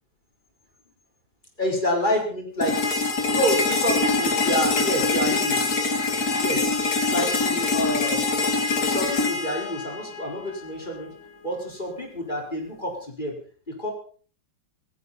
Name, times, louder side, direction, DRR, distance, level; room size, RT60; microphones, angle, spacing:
voice 1, 1.6-2.8 3.3-5.9 6.3-6.8 7.1-8.2 8.8-11.1 11.4-13.3 13.7-13.9, equal, 25° left, 0 dB, 4.7 m, -28 dB
sound 1, 2.6-10.6, left 3 dB, 50° left, 2.5 m, -24 dB
18.5 x 16.0 x 4.2 m, 0.41 s
omnidirectional pair, 2.1 m